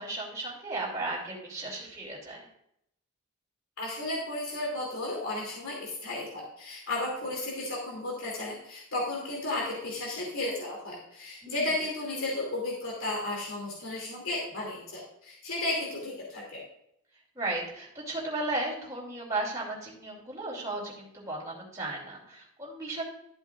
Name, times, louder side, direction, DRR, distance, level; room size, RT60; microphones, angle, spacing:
voice 1, 0.0-2.5 11.4-11.7 17.3-23.0, right 2 dB, 15° right, -6 dB, 2.9 m, -35 dB
voice 2, 3.8-16.6, left 2 dB, 65° left, -3 dB, 2.8 m, -34 dB
13.0 x 7.9 x 2.5 m, 0.75 s
head